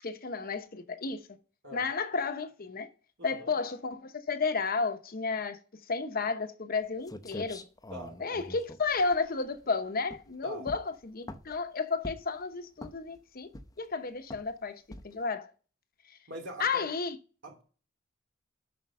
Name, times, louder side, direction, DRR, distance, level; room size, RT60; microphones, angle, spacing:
voice 1, 0.0-1.2 1.7-2.9 3.2-5.6 5.9-7.6 8.2-13.5 13.8-15.5 16.6-17.2, left 4 dB, 50° left, 0.9 m, -32 dB
voice 2, 3.2-3.6 7.9-8.2 10.4-10.7 16.3-16.9 17.4-17.6, equal, 65° right, 2.9 m, -43 dB
sound 1, 6.8-6.9 7.1-9.7 10.1-10.3 10.7-11.6 12.0-12.4 12.8-13.2 13.5-13.9 14.3-14.5 14.9-15.2, left 1 dB, 20° left, 0.7 m, -44 dB
7.7 x 5.8 x 5.4 m
head